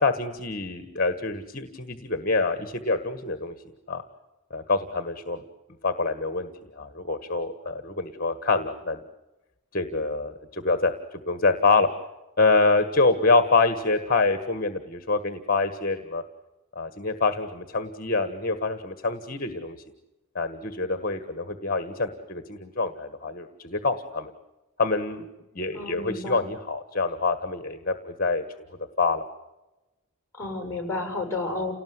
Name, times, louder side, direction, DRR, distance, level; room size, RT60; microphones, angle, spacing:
voice 1, 0.0-3.5 3.9-4.0 4.5-5.4 5.8-6.5 6.8-9.0 9.7-10.9 11.3-11.9 12.4-16.2 16.7-19.8 20.3-24.3 24.8-25.3 25.5-28.4 29.0-29.2, left 3 dB, 45° left, 10 dB, 1.5 m, -25 dB
voice 2, 25.7-26.4 30.3-31.7, left 2 dB, 10° left, 4 dB, 6.6 m, -31 dB
29.5 x 18.5 x 9.5 m, 1.1 s
head